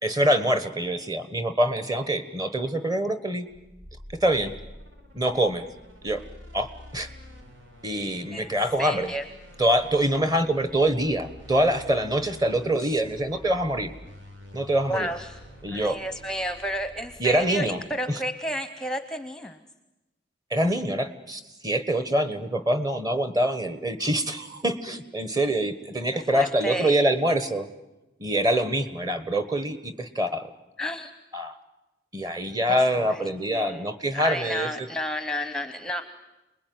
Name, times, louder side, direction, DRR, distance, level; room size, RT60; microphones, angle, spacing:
voice 1, 0.0-3.5 4.2-4.5 5.1-5.7 6.0-6.2 6.5-7.1 7.8-9.1 9.6-13.9 14.5-15.1 15.6-16.0 17.2-17.8 18.1-18.2 20.5-27.7 28.2-30.5 31.3-31.6 32.1-34.9, right 1 dB, 20° right, 10 dB, 1.3 m, -25 dB
sound 1, 3.5-18.1, left 1 dB, 85° right, 4.0 m, -47 dB
voice 2, 8.8-9.2 12.8-13.0 14.9-15.4 15.7-19.6 26.3-27.0 30.8-31.1 32.7-32.8 33.0-33.2 33.5-33.9 34.2-36.0, equal, 5° left, 8 dB, 0.9 m, -31 dB
29.0 x 21.0 x 9.4 m, 1.0 s
head